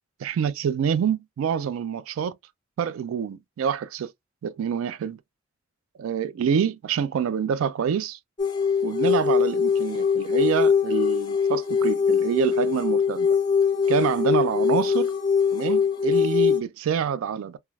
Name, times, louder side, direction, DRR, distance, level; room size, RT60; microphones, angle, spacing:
voice 1, 0.2-2.4 2.8-4.1 4.4-5.2 6.0-8.2 8.8-13.4 13.9-15.1 15.5-17.6, right 7 dB, 85° right, 0.3 m, -26 dB
sound 1, 8.4-16.6, left 6 dB, 25° left, 0.6 m, -22 dB
3.1 x 2.3 x 2.3 m
head